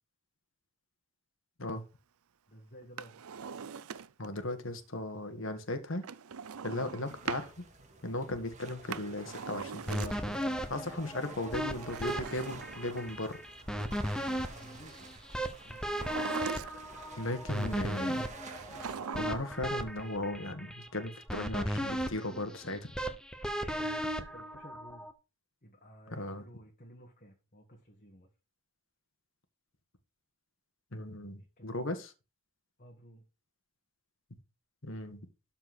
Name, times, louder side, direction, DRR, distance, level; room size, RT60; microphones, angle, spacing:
voice 1, 2.5-3.1 14.5-15.2 15.6-16.3 23.7-25.1 25.6-28.3 31.4-31.9 32.8-33.2, equal, 40° left, 1.7 m, -54 dB
Drawer open or close, 2.8-4.3 6.0-7.5 8.7-10.4 11.7-13.4 15.8-17.0 18.5-19.6 19.8-19.9, right 6 dB, 85° right, 0.6 m, -42 dB
voice 2, 4.2-6.0 6.6-7.5 8.0-10.4 10.7-13.4 17.1-18.2 19.1-22.9 26.1-26.5 30.9-32.1 34.8-35.2, left 1 dB, 60° left, 1.6 m, -37 dB
sound 1, 7.0-18.9, right 3 dB, 35° right, 2.1 m, -51 dB
sound 2, 9.9-25.1, equal, 5° left, 0.9 m, -36 dB
12.5 x 4.5 x 6.0 m
head